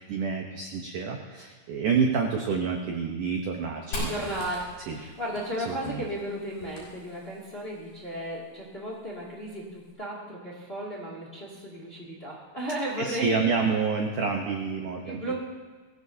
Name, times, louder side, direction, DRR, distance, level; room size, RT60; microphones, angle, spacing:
voice 1, 0.0-4.3 4.9-5.0 5.7-6.0 13.0-15.3, right 5 dB, 85° right, 2 dB, 1.8 m, -28 dB
Fire, 3.9-7.6, left 1 dB, 50° left, 7.0 m, -40 dB
voice 2, 3.9-13.5 14.2-14.3 14.8-15.3, equal, 20° left, -3 dB, 1.6 m, -35 dB
21.0 x 16.5 x 2.8 m, 1.4 s
omnidirectional pair, 5.3 m